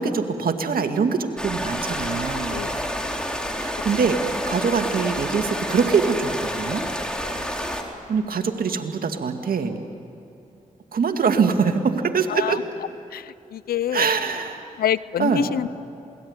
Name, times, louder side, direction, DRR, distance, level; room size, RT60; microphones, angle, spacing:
voice 1, 0.0-2.6 3.6-6.8 8.1-9.7 10.9-12.6 13.9-14.7 15.2-15.5, right 5 dB, 75° right, 5 dB, 2.1 m, -23 dB
sound 1, 1.4-7.8, equal, 5° left, 3.9 m, -29 dB
voice 2, 13.1-14.0 14.8-15.7, left 10 dB, 90° left, 19 dB, 0.5 m, -26 dB
27.5 x 19.5 x 9.7 m, 2.7 s
cardioid pair, 50°, 15 cm